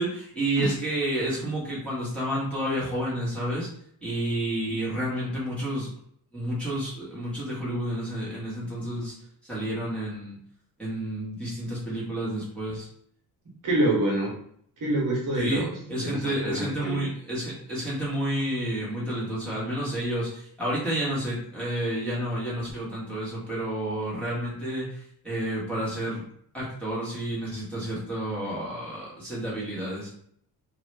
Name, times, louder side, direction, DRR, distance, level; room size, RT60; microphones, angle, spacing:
voice 1, 0.0-3.7 4.0-5.9 6.3-9.1 9.5-10.4 10.8-12.9 15.3-26.2 26.5-30.1, right 1 dB, 5° left, -8 dB, 1.2 m, -30 dB
voice 2, 13.6-14.3 14.8-15.7 16.0-17.1, right 1 dB, 55° right, -3 dB, 1.1 m, -26 dB
2.8 x 2.3 x 3.2 m, 0.64 s
cardioid pair, 145°, 37 cm